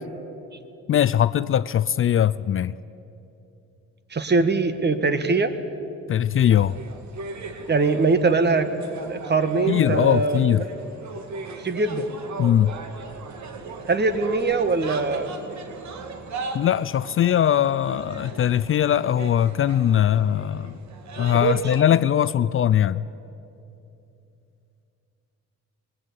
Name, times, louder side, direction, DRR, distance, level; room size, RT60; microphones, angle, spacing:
voice 1, 0.9-2.8 6.1-6.8 9.7-10.6 12.4-12.8 16.5-20.8 21.2-23.1, left 10 dB, 45° left, 18 dB, 0.4 m, -21 dB
voice 2, 4.1-5.5 7.7-8.7 9.1-10.5 11.6-12.1 13.9-15.3 21.4-21.6, right 3 dB, 35° right, 10 dB, 1.7 m, -22 dB
sound 1, 6.5-21.8, right 3 dB, 65° right, 2.2 m, -38 dB
20.0 x 18.0 x 9.7 m, 2.8 s
cardioid pair, 90°, 30 cm